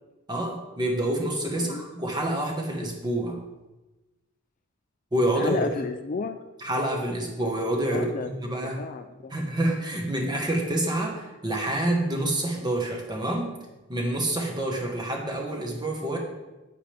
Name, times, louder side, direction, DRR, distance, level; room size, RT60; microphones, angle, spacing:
voice 1, 0.3-3.4 5.1-5.7 6.6-8.8 9.3-13.5 13.9-16.2, right 1 dB, 20° right, 1 dB, 1.4 m, -27 dB
voice 2, 5.4-6.4 7.9-8.3 8.6-9.3, left 4 dB, 40° left, 9 dB, 0.4 m, -32 dB
8.6 x 8.6 x 3.5 m, 1.1 s
head